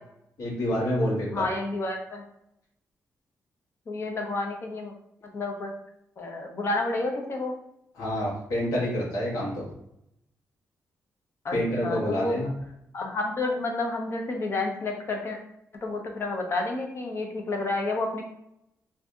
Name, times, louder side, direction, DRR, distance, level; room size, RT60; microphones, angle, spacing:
voice 1, 0.4-1.4 8.0-9.7 11.5-12.6, equal, 75° left, -6 dB, 1.2 m, -28 dB
voice 2, 1.3-2.2 3.9-4.9 5.3-5.7 6.2-7.5 11.4-11.6 11.8-12.5 12.9-15.4 15.8-18.2, left 2 dB, 45° left, 2 dB, 0.6 m, -30 dB
2.6 x 2.6 x 3.4 m, 0.77 s
cardioid pair, 115°, 6 cm